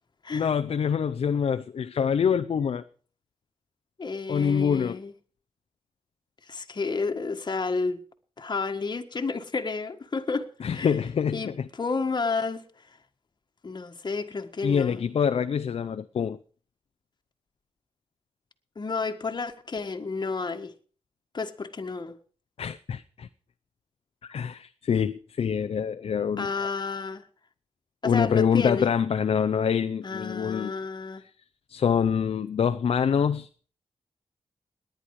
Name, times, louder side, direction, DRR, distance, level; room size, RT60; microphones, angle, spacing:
voice 1, 0.3-2.8 4.3-5.0 10.6-11.7 14.6-16.4 22.6-23.3 24.3-26.7 28.0-30.7 31.7-33.7, left 7 dB, 70° left, 0.6 m, -25 dB
voice 2, 4.0-5.1 6.5-8.0 8.4-10.9 11.3-11.5 11.8-12.6 13.6-15.0 18.8-20.7 21.3-22.2 26.4-27.2 28.0-28.9 30.0-31.2, left 4 dB, 45° left, 1.6 m, -31 dB
18.5 x 10.5 x 4.8 m
cardioid pair, 60°, 11 cm